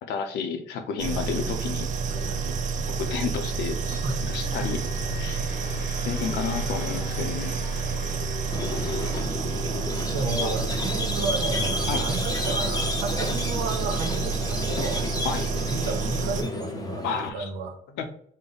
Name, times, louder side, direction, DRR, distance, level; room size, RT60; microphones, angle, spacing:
voice 1, 0.0-1.9 2.9-3.8 4.2-4.9 5.2-5.4 6.1-7.6 10.4-10.5 11.9-12.0 15.2-15.5 17.0-17.5 18.0-18.1, left 6 dB, 85° left, 7 dB, 0.7 m, -31 dB
sound 1, 1.0-9.2, left 3 dB, 55° left, 0.8 m, -38 dB
sound 2, 1.0-16.4, right 5 dB, 50° right, 0.4 m, -29 dB
voice 2, 2.1-2.5 4.0-4.2 4.6-4.8 7.8-9.4 10.1-15.0 15.6-17.8, right 4 dB, 85° right, 6 dB, 0.8 m, -33 dB
Squeak, 8.5-17.3, left 2 dB, 20° left, 0.6 m, -31 dB
5.3 x 2.1 x 3.9 m, 0.64 s
cardioid pair, 110°, 17 cm